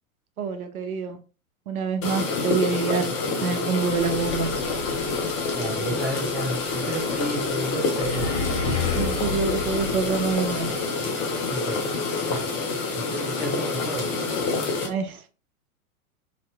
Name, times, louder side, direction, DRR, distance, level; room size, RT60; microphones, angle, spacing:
voice 1, 0.4-1.2 1.7-3.1 3.4-4.5 9.0-10.7 14.8-15.2, right 6 dB, 80° right, 0.6 m, -26 dB
sound 1, 2.0-14.9, left 3 dB, 35° left, 0.8 m, -27 dB
sound 2, 3.8-10.7, left 4 dB, 50° left, 1.3 m, -33 dB
voice 2, 5.5-6.6 6.9-8.4 11.5-11.9 12.3-12.5 13.1-14.1, right 1 dB, 5° right, 0.5 m, -32 dB
3.0 x 2.6 x 2.3 m
figure-of-eight pair, 100°, 43 cm